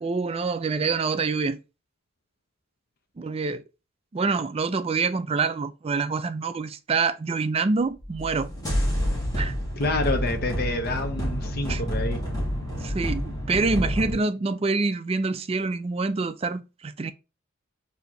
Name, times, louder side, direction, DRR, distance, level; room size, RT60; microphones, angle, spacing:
voice 1, 0.0-1.6 3.2-3.6 4.1-8.5 9.4-9.5 11.7-11.8 12.8-17.1, right 4 dB, 25° right, 0.3 m, -26 dB
The Battle Between Scorpio And Orion, 8.0-14.1, equal, 15° left, 1.5 m, -28 dB
voice 2, 9.8-12.2, left 2 dB, 45° left, 0.7 m, -28 dB
4.3 x 2.8 x 2.8 m
head